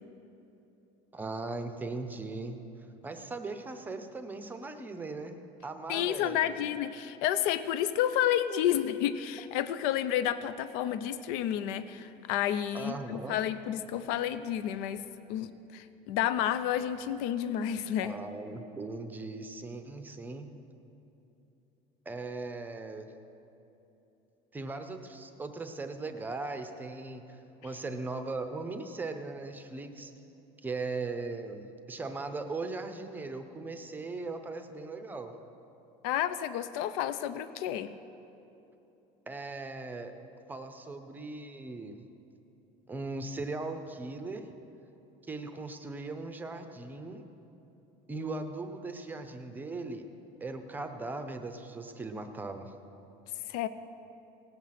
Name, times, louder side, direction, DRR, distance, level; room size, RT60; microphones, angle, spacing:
voice 1, 1.1-2.6 3.0-5.4 5.6-6.7 12.7-13.4 18.0-20.5 22.1-23.1 24.5-30.1 30.6-35.3 39.3-40.1 40.5-42.0 42.9-44.5 45.3-47.2 48.1-50.0 50.4-52.7, right 3 dB, 10° right, 7 dB, 0.6 m, -39 dB
voice 2, 5.9-18.1 36.0-37.9 53.5-53.7, left 11 dB, 80° left, 13 dB, 0.5 m, -30 dB
17.5 x 7.8 x 5.8 m, 3.0 s
cardioid pair, 170°, 16 cm